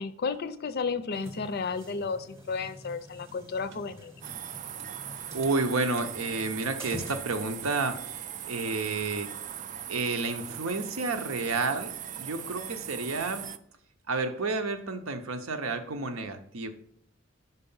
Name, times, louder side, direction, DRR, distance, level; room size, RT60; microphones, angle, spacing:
voice 1, 0.0-4.1, left 4 dB, 50° left, 13 dB, 0.5 m, -33 dB
sound 1, 1.1-7.7, equal, 15° right, 0.8 m, -47 dB
sound 2, 3.3-3.4 3.7-3.9 4.3-4.4 4.8-4.9 5.4-5.5 6.0-6.2 6.6-6.9 7.6-7.9 9.1-9.4 10.5-10.7 11.5-11.8, right 2 dB, 60° right, 0.7 m, -50 dB
sound 3, 4.2-13.6, right 10 dB, 40° right, 0.3 m, -40 dB
voice 2, 5.3-9.3 9.9-11.9 12.2-13.5 14.1-16.7, right 3 dB, 90° right, 7 dB, 0.8 m, -30 dB
5.5 x 4.7 x 5.5 m, 0.66 s
head